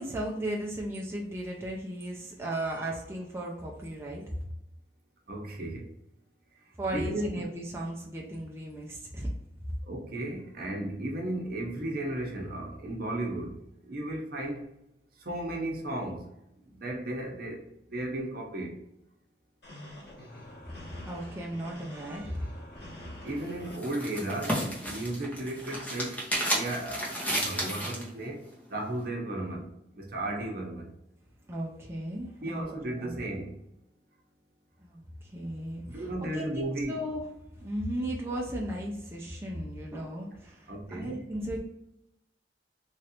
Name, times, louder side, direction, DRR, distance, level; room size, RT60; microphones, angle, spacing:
voice 1, 0.0-4.2 6.8-9.3 21.1-22.4 31.5-33.2 34.8-37.2 37.6-41.6, right 1 dB, 15° right, -2 dB, 0.5 m, -36 dB
voice 2, 5.3-5.8 6.9-7.5 9.9-13.6 13.8-14.7 15.2-16.3 16.7-17.6 17.9-18.7 23.2-28.4 28.7-30.9 32.4-33.5 35.8-37.0 40.7-41.2, right 1 dB, 55° right, 0 dB, 0.8 m, -35 dB
sound 1, 19.6-23.8, left 1 dB, 75° left, 1.5 m, -45 dB
sound 2, 23.3-28.1, equal, 10° left, 0.8 m, -32 dB
3.1 x 2.5 x 2.9 m, 0.85 s
head